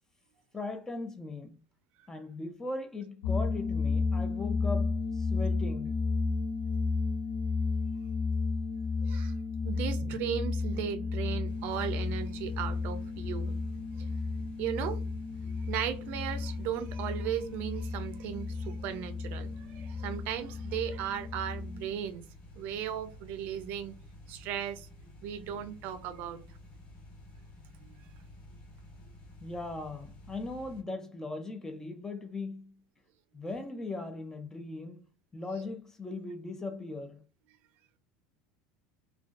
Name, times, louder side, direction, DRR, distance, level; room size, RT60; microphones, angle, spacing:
voice 1, 0.5-1.6 2.1-6.0 29.4-32.8 33.3-35.0 35.3-37.2, left 3 dB, 15° left, 0.4 m, -39 dB
sound 1, 3.2-21.9, left 4 dB, 85° left, 0.4 m, -33 dB
voice 2, 9.6-13.6 14.0-14.1 14.6-15.0 15.4-22.2 22.6-23.9 24.3-24.9 25.2-26.4 27.8-28.0, right 9 dB, 60° right, 0.4 m, -36 dB
sound 2, 11.4-30.8, left 1 dB, 40° left, 1.4 m, -52 dB
2.4 x 2.2 x 2.3 m
supercardioid pair, 110°, 4 cm